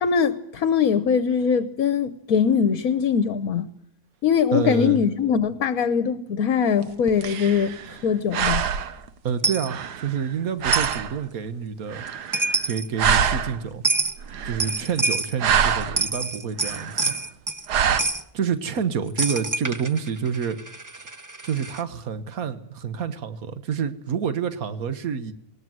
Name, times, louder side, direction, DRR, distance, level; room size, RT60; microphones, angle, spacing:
voice 1, 0.0-3.7 4.2-7.7 8.0-8.6, left 7 dB, 65° left, 12 dB, 1.4 m, -22 dB
voice 2, 4.5-5.0 9.2-12.1 12.7-13.8 14.4-17.1 18.3-20.6 21.0-21.1 21.4-25.3, right 7 dB, 65° right, 11 dB, 1.7 m, -28 dB
sound 1, 6.8-8.1 8.3-9.1 9.7-10.3 10.6-11.2 11.9-12.7 13.0-13.7 14.2-14.9 15.2-16.0 16.6-17.2 17.7-18.0, right 8 dB, 85° right, 1.6 m, -25 dB
Coin (dropping), 9.4-9.7 10.7-11.0 12.1-12.2 12.3-12.9 13.8-14.2 14.6-15.3 15.8-17.6 18.0-18.2 19.2-21.8, right 3 dB, 25° right, 0.4 m, -26 dB
20.0 x 19.0 x 7.8 m, 0.77 s
omnidirectional pair, 1.7 m